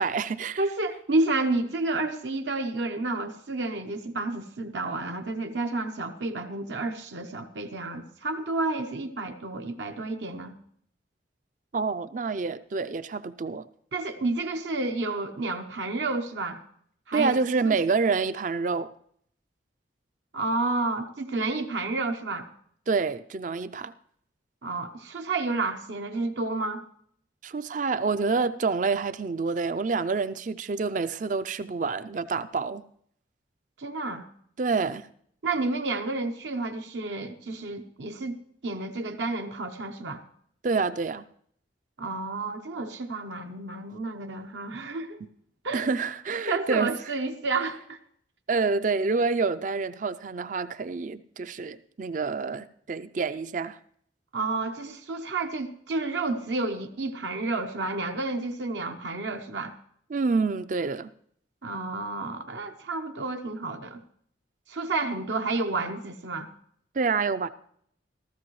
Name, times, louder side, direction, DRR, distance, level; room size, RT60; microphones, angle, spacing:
voice 1, 0.0-0.6 11.7-13.7 17.1-18.9 22.9-23.9 27.4-32.8 34.6-35.1 40.6-41.2 45.7-46.9 48.5-53.8 60.1-61.1 66.9-67.5, right 4 dB, 45° right, 0.4 m, -27 dB
voice 2, 0.6-10.5 13.9-16.6 17.1-17.8 20.3-22.5 24.6-26.8 33.8-34.3 35.4-40.2 42.0-45.2 45.6-45.9 46.5-48.0 54.3-59.7 61.6-64.0 64.7-66.5, right 3 dB, 70° right, 0.8 m, -30 dB
15.5 x 14.0 x 3.1 m
head